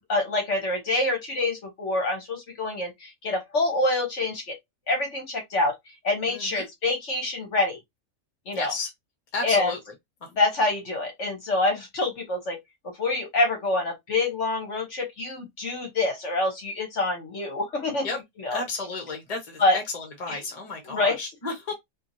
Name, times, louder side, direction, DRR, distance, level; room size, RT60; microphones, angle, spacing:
voice 1, 0.1-4.5 4.9-5.7 6.0-7.8 8.5-8.7 9.4-9.7 10.4-12.6 13.0-18.1 18.4-18.6 19.6-19.8 20.3-20.4 20.9-21.2, left 2 dB, 60° left, 1.1 m, -26 dB
voice 2, 6.3-6.7 8.5-8.9 9.3-9.8 10.2-10.3 18.0-18.2 18.5-21.7, left 3 dB, 30° left, 1.0 m, -32 dB
2.7 x 2.7 x 2.6 m
omnidirectional pair, 1.5 m